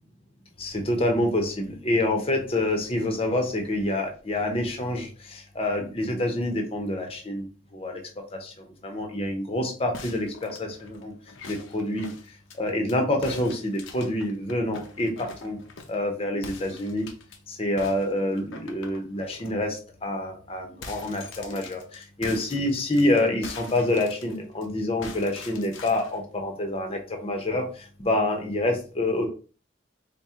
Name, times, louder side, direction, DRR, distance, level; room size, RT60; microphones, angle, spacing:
voice 1, 0.6-7.4 7.7-8.0 8.3-11.1 11.5-12.1 12.5-15.6 15.9-17.1 17.5-29.3, left 1 dB, 30° left, 3 dB, 0.7 m, -27 dB
sound 1, 9.9-13.0 13.2-16.0 16.4-17.4 17.8-19.5 19.9-20.1 20.4-24.7 25.0-26.2, left 4 dB, 90° left, 0.6 m, -44 dB
4.2 x 2.1 x 3.6 m, 0.37 s
head